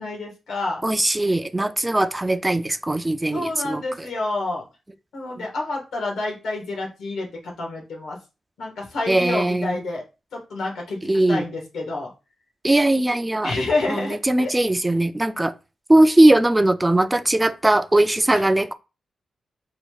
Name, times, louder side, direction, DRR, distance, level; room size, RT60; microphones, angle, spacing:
voice 1, 0.0-0.8 3.3-4.6 5.1-8.2 8.6-10.0 10.3-11.0 11.3-12.1 13.4-14.5 18.3-18.4, left 2 dB, 85° left, 1.7 m, -28 dB
voice 2, 0.8-3.8 5.4-5.5 9.1-9.8 11.0-11.5 12.6-13.5 13.9-15.5 15.9-18.7, right 1 dB, 10° right, 0.3 m, -19 dB
4.0 x 2.4 x 4.7 m
wide cardioid pair, 150°, 0 cm